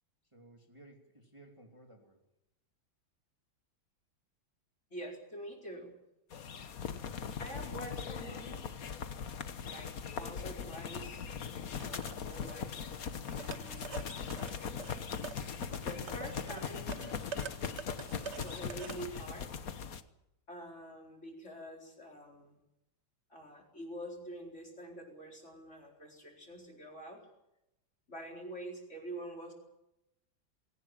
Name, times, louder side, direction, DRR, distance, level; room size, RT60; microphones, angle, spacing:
voice 1, 0.2-2.2 7.4-8.0, right 1 dB, 15° right, 1 dB, 3.2 m, -57 dB
voice 2, 4.9-5.9 7.4-8.6 9.6-11.3 11.5-12.8 13.3-14.4 15.8-17.2 18.4-19.5 20.5-22.6 23.3-27.2 28.1-29.5, right 1 dB, 35° left, 1 dB, 4.7 m, -46 dB
sound 1, 6.3-20.0, left 6 dB, 50° left, 1.5 m, -40 dB
sound 2, 11.8-19.0, right 6 dB, 50° right, 0.8 m, -47 dB
20.5 x 18.0 x 9.0 m, 0.87 s
omnidirectional pair, 2.2 m